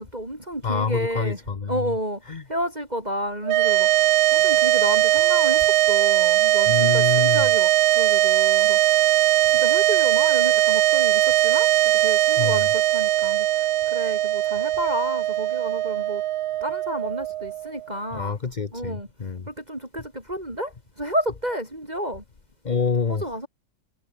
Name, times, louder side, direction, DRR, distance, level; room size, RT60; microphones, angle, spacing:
voice 1, 0.0-1.4 1.7-2.2 2.5-3.9 4.3-8.8 9.5-13.5 13.9-16.2 16.6-18.4 18.7-19.1 19.5-20.7 21.0-22.2 23.1-23.5, equal, 20° right, 6.1 m, -31 dB
voice 2, 0.6-1.9 2.3-2.4 6.7-7.5 12.4-12.7 18.1-19.5 22.6-23.2, left 5 dB, 30° left, 1.0 m, -26 dB
sound 1, 3.4-17.9, right 14 dB, 70° right, 1.1 m, -20 dB
omnidirectional pair, 1.9 m